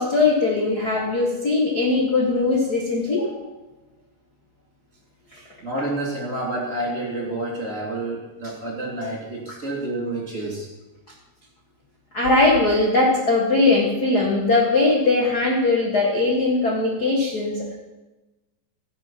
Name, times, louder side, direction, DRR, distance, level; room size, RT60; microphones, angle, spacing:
voice 1, 0.0-3.2 5.3-5.4 12.1-17.8, left 3 dB, 40° left, -2 dB, 1.5 m, -20 dB
voice 2, 3.1-3.4 5.6-10.7, right 1 dB, 25° right, -3 dB, 3.1 m, -29 dB
17.0 x 7.4 x 5.8 m, 1.1 s
omnidirectional pair, 3.9 m